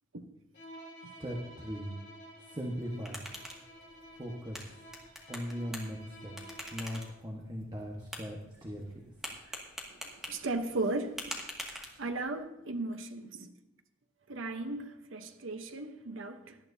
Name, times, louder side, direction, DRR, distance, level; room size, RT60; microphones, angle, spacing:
Bowed string instrument, 0.5-7.2, equal, 60° left, 3.0 m, -52 dB
voice 1, 1.2-1.9 2.5-3.3 4.2-4.6 5.3-6.3 6.7-8.8, equal, 25° right, 1.3 m, -39 dB
sound 1, 2.7-12.4, equal, ahead, 2.0 m, -46 dB
voice 2, 9.3-9.6 10.0-11.2 12.0-13.5 14.3-16.6, right 2 dB, 85° right, 0.9 m, -36 dB
18.0 x 12.0 x 2.7 m
head